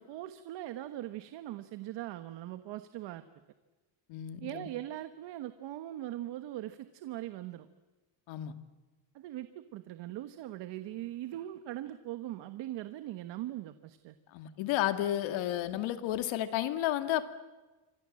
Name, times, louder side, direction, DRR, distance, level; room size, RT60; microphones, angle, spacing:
voice 1, 0.0-3.3 4.4-7.7 9.1-14.2, right 14 dB, 65° right, 10 dB, 1.4 m, -41 dB
voice 2, 4.1-4.7 8.3-8.5 14.3-17.2, left 13 dB, 80° left, 9 dB, 2.4 m, -32 dB
27.5 x 26.0 x 7.7 m, 1.2 s
cardioid pair, 180°, 46 cm